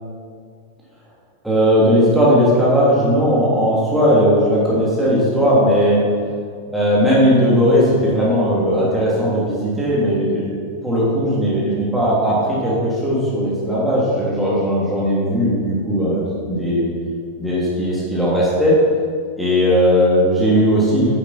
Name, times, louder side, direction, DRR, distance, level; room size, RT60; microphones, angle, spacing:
voice 1, 1.4-6.0 6.7-10.5 10.8-16.9 17.4-18.7 19.4-21.1, equal, 5° right, -8 dB, 2.9 m, -17 dB
10.0 x 8.1 x 4.4 m, 2.1 s
figure-of-eight pair, 90°, 0 cm